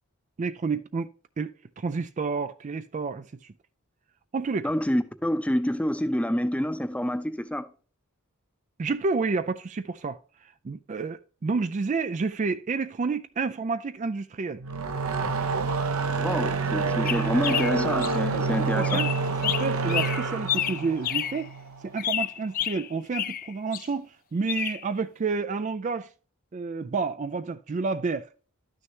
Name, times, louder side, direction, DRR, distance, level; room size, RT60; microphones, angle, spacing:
voice 1, 0.4-1.1 1.4-3.5 4.3-4.7 8.8-14.6 18.8-19.1 19.4-21.5 21.8-26.1 26.5-28.3, right 4 dB, 35° right, 0.3 m, -30 dB
voice 2, 4.6-7.7 16.1-19.0, equal, 5° left, 0.7 m, -27 dB
sound 1, 14.6-22.0, right 4 dB, 75° right, 0.9 m, -28 dB
sound 2, 17.0-18.2 18.8-21.4 22.0-23.9 24.5-24.8, left 11 dB, 40° left, 0.4 m, -30 dB
12.0 x 6.4 x 2.9 m
head